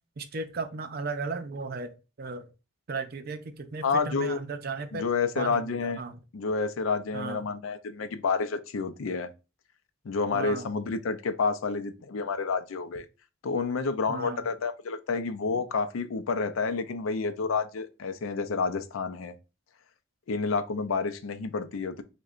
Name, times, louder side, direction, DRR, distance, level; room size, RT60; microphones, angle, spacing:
voice 1, 0.2-2.5 2.9-5.1 5.4-6.2 7.1-7.4 10.3-10.7 14.1-14.5, right 4 dB, 50° right, 0.5 m, -35 dB
voice 2, 3.8-4.4 4.9-6.0 6.3-9.3 10.0-13.1 13.4-19.3 20.3-22.0, left 4 dB, 85° left, 0.4 m, -29 dB
6.3 x 2.2 x 2.4 m
head